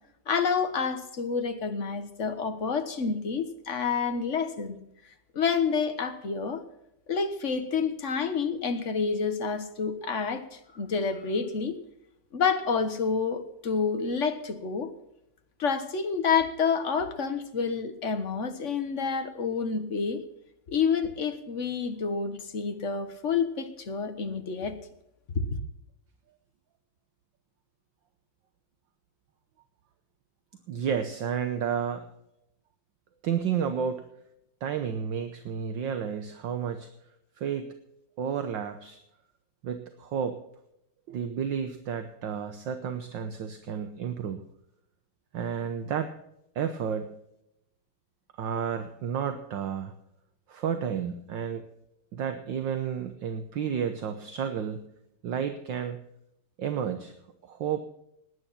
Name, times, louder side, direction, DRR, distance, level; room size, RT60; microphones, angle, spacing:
voice 1, 0.3-4.8 5.3-6.6 7.1-11.8 12.3-14.9 15.6-20.2 20.7-24.7 25.3-25.4, left 5 dB, 40° left, 8 dB, 1.4 m, -28 dB
voice 2, 30.7-32.1 33.2-34.1 34.6-36.9 37.4-37.7 38.2-39.0 39.6-40.4 41.1-44.4 45.3-46.1 46.5-47.2 48.3-49.9 50.5-51.7 52.1-54.9 55.2-56.0 56.6-57.1 57.4-57.8, right 7 dB, 65° right, 8 dB, 1.6 m, -31 dB
19.0 x 9.6 x 5.8 m, 0.81 s
omnidirectional pair, 2.4 m